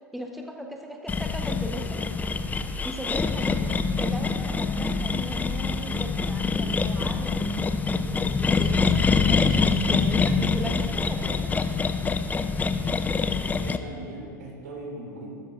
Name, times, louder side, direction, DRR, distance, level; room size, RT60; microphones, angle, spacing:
voice 1, 0.1-2.1 2.8-7.8 8.3-11.7, equal, ahead, 2 dB, 1.0 m, -37 dB
sound 1, 1.1-13.8, left 4 dB, 15° left, 0.5 m, -25 dB
voice 2, 13.6-15.4, right 2 dB, 70° right, 0 dB, 2.5 m, -39 dB
13.0 x 12.5 x 2.5 m, 2.1 s
hypercardioid pair, 85°, 10 cm